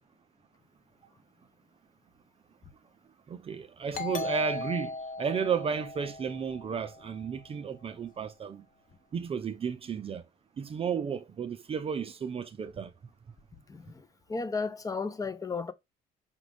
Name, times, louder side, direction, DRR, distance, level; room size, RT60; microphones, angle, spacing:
voice 1, 3.3-8.6 9.1-10.2 10.6-12.9, right 6 dB, 35° right, 0.5 m, -33 dB
Doorbell, 3.9-7.3, left 3 dB, 50° left, 0.8 m, -38 dB
voice 2, 13.5-15.7, left 4 dB, 20° left, 0.6 m, -34 dB
5.1 x 2.4 x 3.3 m
cardioid pair, 110°, 17 cm